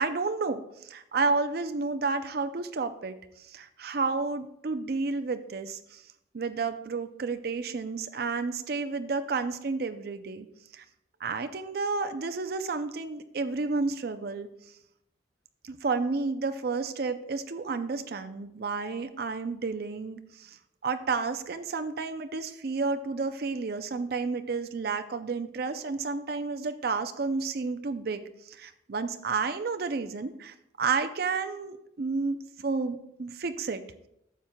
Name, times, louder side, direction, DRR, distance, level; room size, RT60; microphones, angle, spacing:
voice 1, 0.0-3.1 3.4-6.0 6.3-10.5 10.7-10.8 11.2-14.5 15.6-20.6 20.8-33.8, right 4 dB, 55° right, 8 dB, 0.4 m, -31 dB
12.0 x 7.1 x 2.2 m, 0.80 s
head